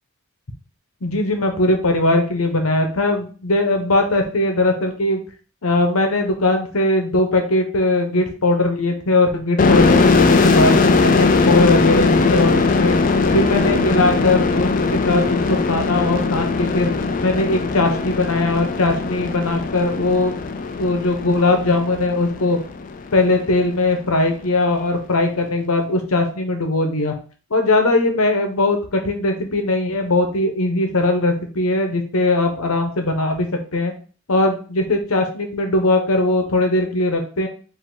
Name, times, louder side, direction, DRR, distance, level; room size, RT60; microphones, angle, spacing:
voice 1, 1.0-5.2 5.6-13.0 13.3-16.9 17.2-20.4 20.8-22.6 23.1-27.1 27.5-33.5 33.7-33.9 34.3-37.5, left 2 dB, 80° left, 4 dB, 1.0 m, -19 dB
sound 1, 9.6-23.0, left 3 dB, 35° left, 0.4 m, -19 dB
4.9 x 2.8 x 3.8 m, 0.38 s
head